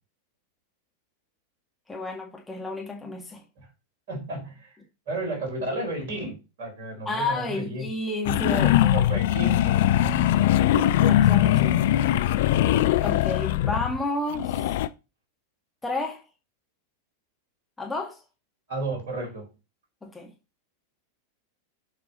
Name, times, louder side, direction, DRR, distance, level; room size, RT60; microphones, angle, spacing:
voice 1, 1.9-3.4 7.1-9.0 11.0-11.8 13.0-14.7 15.8-16.2 17.8-18.2 20.0-20.3, left 2 dB, 10° left, 1.9 m, -31 dB
voice 2, 4.1-4.8 5.1-7.9 8.5-10.5 12.5-13.0 18.7-19.5, right 1 dB, 55° right, 4.1 m, -33 dB
sound 1, 8.2-14.0 14.3-14.9, left 12 dB, 55° left, 0.5 m, -21 dB
10.5 x 5.3 x 4.2 m
figure-of-eight pair, 90°, 0 cm